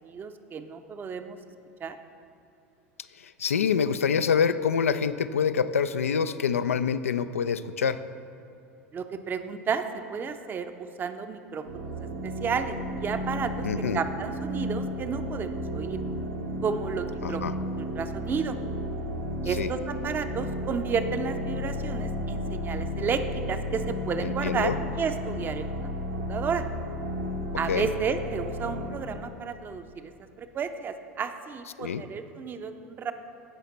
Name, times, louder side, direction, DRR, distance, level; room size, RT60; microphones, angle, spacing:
voice 1, 0.0-1.4 1.8-2.0 8.9-9.8 10.1-11.9 12.2-13.7 13.9-16.0 16.6-18.6 19.4-25.9 26.3-26.6 27.6-30.1 30.4-33.1, right 6 dB, 25° right, 9 dB, 0.6 m, -32 dB
voice 2, 3.2-8.0 13.6-14.0 17.2-17.5 19.4-19.7 24.2-24.8 27.7-27.9 31.8-32.0, left 7 dB, 75° left, 12 dB, 0.3 m, -26 dB
sound 1, 11.6-28.9, equal, 80° right, 1.5 m, -33 dB
16.0 x 5.7 x 4.1 m, 2.8 s
figure-of-eight pair, 80°, 8 cm